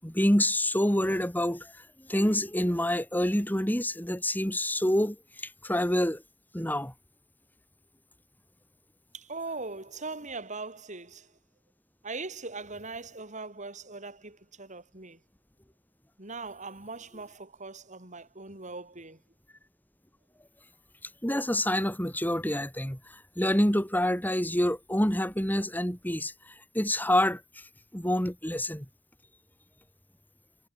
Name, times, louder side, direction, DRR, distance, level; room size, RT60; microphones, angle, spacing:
voice 1, 0.0-1.7 2.1-5.2 5.4-6.2 6.5-6.9 21.2-23.0 23.4-26.3 26.7-27.4 27.9-28.9, left 1 dB, 10° left, 5.9 m, -27 dB
voice 2, 9.1-11.3 12.0-15.2 16.2-19.2, right 3 dB, 35° right, 5.1 m, -40 dB
head